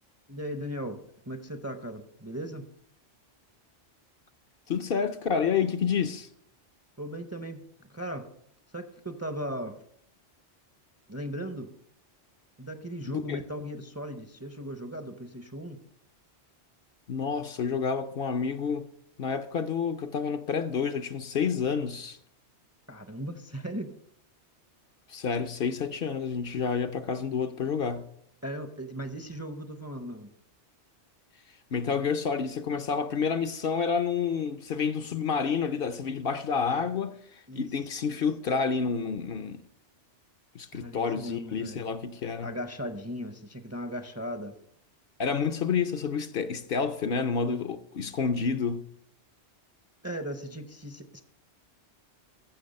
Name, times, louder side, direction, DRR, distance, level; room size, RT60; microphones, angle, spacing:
voice 1, 0.3-2.7 7.0-7.6 7.9-8.3 8.7-9.8 11.1-11.7 12.6-15.8 22.9-23.9 28.4-30.3 37.5-37.7 40.7-41.8 42.4-44.6 50.0-51.2, equal, 15° right, 0.6 m, -37 dB
voice 2, 4.7-6.3 13.1-13.4 17.1-18.9 19.2-22.2 25.1-28.1 31.7-39.6 40.5-42.5 45.2-48.9, left 6 dB, 60° left, 0.8 m, -29 dB
15.0 x 6.1 x 5.3 m
omnidirectional pair, 1.2 m